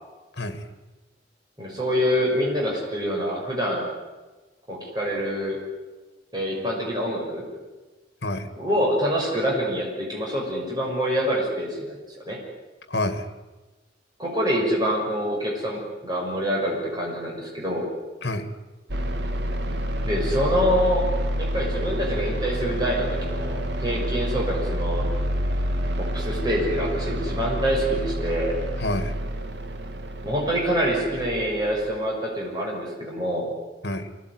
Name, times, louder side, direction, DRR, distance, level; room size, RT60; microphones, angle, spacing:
voice 1, 1.6-3.9 4.7-5.6 6.3-7.4 8.5-12.4 14.2-17.8 20.0-21.1 21.4-25.1 26.0-28.5 30.2-33.5, equal, 20° right, -3 dB, 6.3 m, -26 dB
voice 2, 8.2-8.5 12.9-13.3 18.2-18.5 28.8-29.2 33.8-34.1, left 1 dB, 60° left, 9 dB, 2.3 m, -28 dB
sound 1, 18.9-32.0, equal, 65° right, 1.8 m, -28 dB
25.0 x 18.5 x 9.7 m, 1.2 s
head